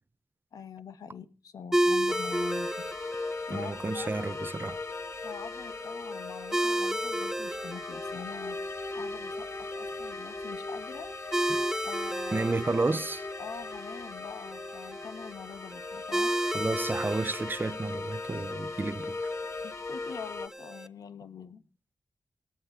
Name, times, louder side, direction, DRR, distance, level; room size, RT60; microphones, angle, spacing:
voice 1, 0.5-2.7 3.2-4.4 5.2-8.6 8.9-11.1 11.8-12.8 13.4-16.4 19.6-21.6, left 7 dB, 85° left, 1.3 m, -44 dB
sound 1, 1.7-20.9, right 1 dB, 10° right, 1.0 m, -34 dB
sound 2, 2.1-20.5, left 3 dB, 45° left, 0.9 m, -39 dB
voice 2, 3.5-4.8 11.5-11.6 12.3-13.3 16.5-19.2, right 3 dB, 35° right, 0.8 m, -31 dB
18.0 x 8.9 x 7.3 m
cardioid pair, 45°, 6 cm